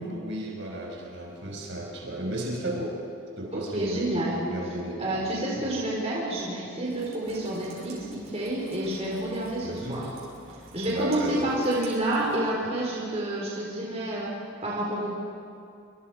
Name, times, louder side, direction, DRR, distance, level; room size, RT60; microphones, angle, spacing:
voice 1, 0.0-3.0 3.4-5.2 5.5-5.7 9.6-10.1 10.8-11.5, right 1 dB, 60° right, -1 dB, 5.8 m, -34 dB
voice 2, 3.5-4.4 5.0-10.1 10.7-14.4 14.6-15.1, right 1 dB, 30° right, -4 dB, 4.4 m, -29 dB
Rain, 6.8-12.4, right 2 dB, 80° right, 7.5 m, -48 dB
27.5 x 26.5 x 5.0 m, 2.5 s
head